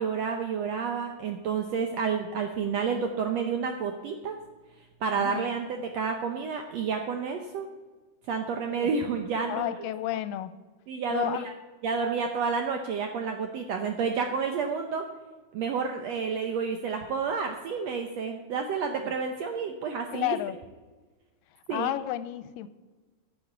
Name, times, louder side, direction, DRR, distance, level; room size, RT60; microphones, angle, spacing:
voice 1, 0.0-4.4 5.0-7.7 8.3-9.8 10.9-11.5 11.8-15.0 15.5-20.3 21.7-21.9, right 5 dB, 75° right, 4 dB, 1.5 m, -30 dB
voice 2, 5.1-5.4 8.7-8.9 9.5-10.5 11.1-11.5 19.0-19.1 20.1-20.6 21.7-22.7, left 14 dB, 85° left, 14 dB, 2.2 m, -31 dB
10.5 x 7.3 x 8.1 m, 1.3 s
omnidirectional pair, 3.9 m